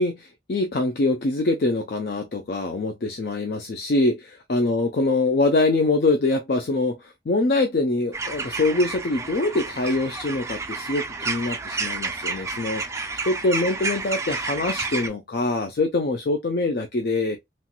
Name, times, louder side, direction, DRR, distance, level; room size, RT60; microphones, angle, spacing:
voice 1, 0.0-17.4, left 2 dB, 60° left, 0.4 m, -24 dB
sound 1, 8.1-15.1, right 3 dB, 15° right, 0.3 m, -30 dB
3.0 x 2.9 x 2.3 m
head